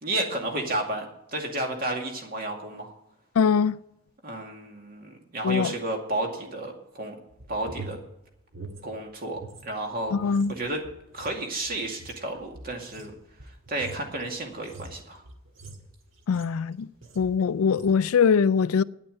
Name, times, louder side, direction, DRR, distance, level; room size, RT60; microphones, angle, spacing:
voice 1, 0.0-1.1 1.3-2.9 4.2-7.1 7.5-8.0 8.8-10.8 11.1-13.1 13.7-15.2, right 2 dB, 45° right, 2.3 m, -32 dB
voice 2, 3.4-3.7 5.4-5.7 10.1-10.5 16.3-16.9 17.2-18.8, left 6 dB, 85° left, 0.4 m, -22 dB
sound 1, 7.3-9.7 10.0-16.7 17.0-17.4 17.7-18.0, right 2 dB, 60° right, 1.6 m, -45 dB
9.7 x 8.8 x 7.8 m
head